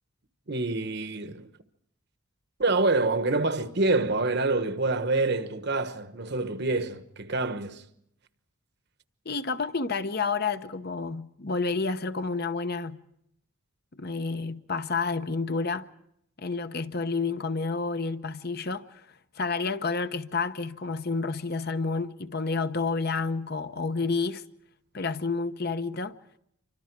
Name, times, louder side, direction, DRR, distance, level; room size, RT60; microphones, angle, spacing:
voice 1, 0.5-1.5 2.6-7.8, right 2 dB, 50° right, 1.2 m, -26 dB
voice 2, 9.2-13.0 13.9-15.9 16.4-19.0 19.4-24.4 24.9-26.2, left 4 dB, 45° left, 0.9 m, -30 dB
28.0 x 25.0 x 4.7 m
head